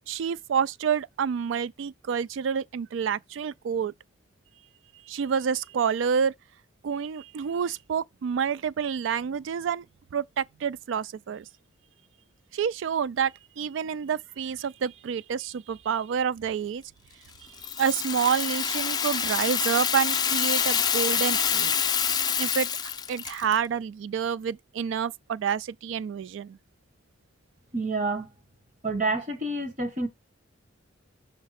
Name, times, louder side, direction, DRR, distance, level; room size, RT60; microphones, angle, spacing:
voice 1, 0.1-3.9 5.1-6.3 6.8-9.8 10.1-11.5 12.5-16.8 17.8-21.7 22.4-22.7 23.1-26.6, right 7 dB, 70° right, 0.3 m, -28 dB
Rattle (instrument), 17.6-23.6, left 7 dB, 20° left, 0.5 m, -26 dB
voice 2, 27.7-28.3 28.8-30.1, right 2 dB, 40° right, 1.3 m, -28 dB
6.4 x 2.9 x 5.7 m
head